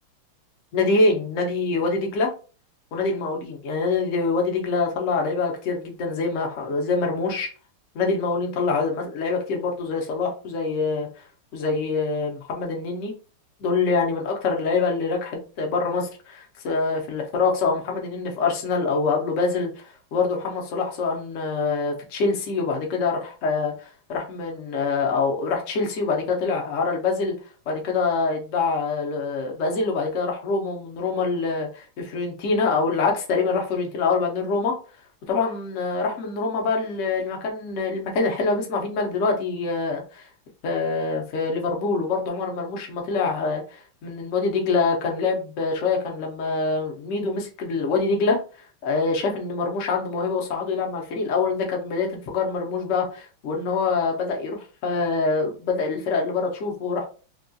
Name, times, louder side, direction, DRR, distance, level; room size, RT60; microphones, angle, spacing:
voice 1, 0.7-2.3 2.9-7.5 7.9-11.1 11.5-13.1 13.6-23.7 24.1-27.3 27.7-34.7 35.3-40.3 40.6-48.4 48.8-57.1, left 4 dB, 65° left, 1 dB, 0.7 m, -25 dB
3.5 x 2.3 x 2.6 m, 0.36 s
omnidirectional pair, 2.4 m